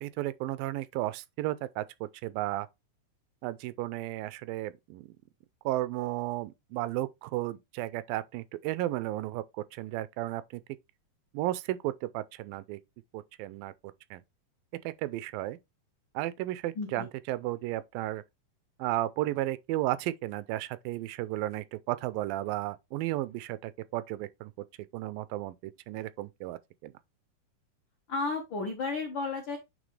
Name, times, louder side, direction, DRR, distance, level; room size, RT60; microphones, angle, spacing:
voice 1, 0.0-2.7 3.4-5.1 5.7-10.6 11.3-12.8 13.1-13.7 14.1-14.2 14.8-15.6 16.2-18.2 18.8-24.5 24.9-26.9, right 16 dB, 90° right, 2.3 m, -34 dB
voice 2, 16.7-17.0 28.1-29.6, left 3 dB, 75° left, 1.1 m, -33 dB
9.1 x 3.4 x 3.2 m
omnidirectional pair, 3.9 m